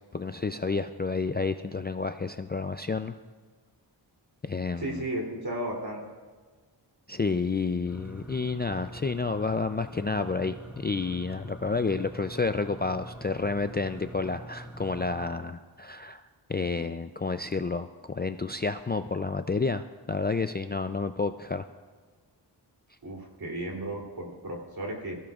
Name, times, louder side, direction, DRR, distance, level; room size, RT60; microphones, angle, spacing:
voice 1, 0.1-3.1 4.4-5.0 7.1-16.2 16.5-21.6, left 4 dB, 25° left, 8 dB, 0.3 m, -30 dB
voice 2, 4.8-6.0 23.0-25.2, right 1 dB, 55° right, -1 dB, 3.1 m, -34 dB
sound 1, 7.9-15.3, right 1 dB, 5° right, 1.4 m, -44 dB
22.5 x 15.5 x 2.4 m, 1.4 s
wide cardioid pair, 100°, 44 cm